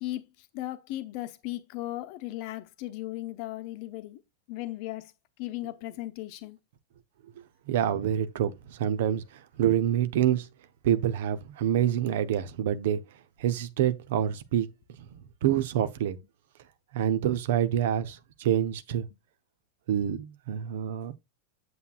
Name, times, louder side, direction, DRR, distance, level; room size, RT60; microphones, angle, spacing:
voice 1, 0.0-4.2 4.5-5.1 5.4-6.6, left 16 dB, 45° left, 0.9 m, -36 dB
voice 2, 7.7-10.5 10.8-13.0 13.4-14.7 15.4-16.2 16.9-19.1 19.9-21.1, right 10 dB, 55° right, 0.8 m, -27 dB
8.1 x 7.8 x 2.4 m
figure-of-eight pair, 90°, 0 cm